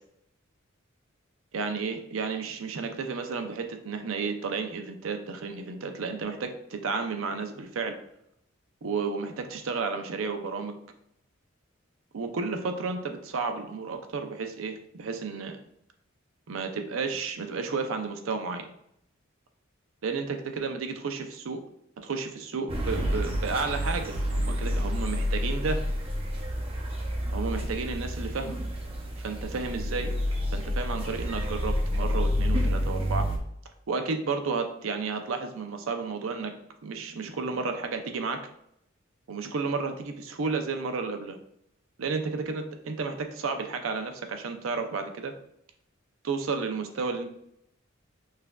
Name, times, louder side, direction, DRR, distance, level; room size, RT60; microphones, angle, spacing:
voice 1, 1.5-8.0 8.8-10.8 12.1-15.5 16.5-18.7 20.0-21.6 22.0-25.8 27.3-28.6 29.2-30.1 30.5-33.3 33.9-36.5 36.8-38.4 39.3-41.4 42.0-45.3 46.2-47.3, right 4 dB, 75° right, 6 dB, 0.5 m, -32 dB
sound 1, 22.7-33.4, equal, 30° right, 0.6 m, -29 dB
5.5 x 2.5 x 2.3 m, 0.73 s
head